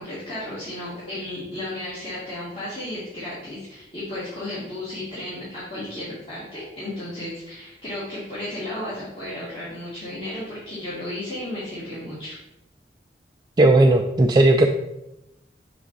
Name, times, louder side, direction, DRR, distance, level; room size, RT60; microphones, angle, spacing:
voice 1, 0.0-12.3, left 1 dB, 30° left, -10 dB, 1.9 m, -34 dB
voice 2, 13.6-14.7, right 2 dB, 25° right, 3 dB, 0.3 m, -15 dB
7.1 x 3.9 x 3.8 m, 0.89 s
head